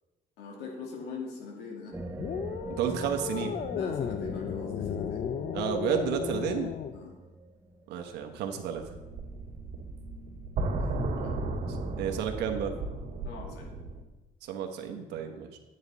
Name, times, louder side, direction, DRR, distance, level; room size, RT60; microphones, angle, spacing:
voice 1, 0.4-2.0 3.7-5.2 6.9-7.1 10.8-11.4 13.2-13.7, left 4 dB, 85° left, 1 dB, 2.2 m, -42 dB
sound 1, 1.9-9.2, right 2 dB, 15° right, 0.8 m, -43 dB
sound 2, 2.2-7.0, left 8 dB, 45° left, 0.5 m, -34 dB
voice 2, 2.7-3.6 5.5-6.7 7.9-8.8 12.0-12.7 14.4-15.6, right 8 dB, 85° right, 4 dB, 1.1 m, -31 dB
sound 3, 8.8-14.0, right 2 dB, 55° right, 2.0 m, -35 dB
9.4 x 8.7 x 4.0 m, 1.1 s
cardioid pair, 110°, 17 cm